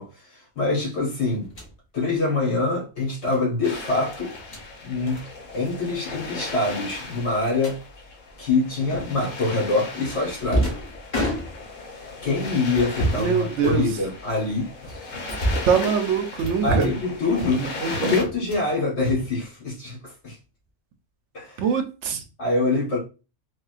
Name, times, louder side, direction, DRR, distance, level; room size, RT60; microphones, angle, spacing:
voice 1, 0.0-1.5 1.9-4.4 4.8-5.2 5.5-7.8 8.4-10.8 12.2-15.0 16.6-17.7 18.0-20.4 21.3-21.6 22.4-23.0, left 3 dB, 60° left, 1.7 m, -25 dB
sound 1, 1.4-1.7 3.2-3.4 4.3-4.7 5.1-5.3 5.5-5.8 6.0-6.1 6.8-7.8 8.9-9.3 10.0-11.9 12.7-13.3 13.6-14.3 14.8-15.8 16.4-17.0 17.3-17.8 18.2-18.7 19.0-19.8, right 1 dB, 40° left, 1.0 m, -29 dB
sound 2, 3.6-18.2, left 3 dB, 80° left, 1.2 m, -36 dB
voice 2, 13.1-13.9 15.7-16.9 17.6-18.2 21.6-22.2, right 6 dB, 70° right, 0.8 m, -23 dB
3.6 x 2.5 x 2.4 m
omnidirectional pair, 1.3 m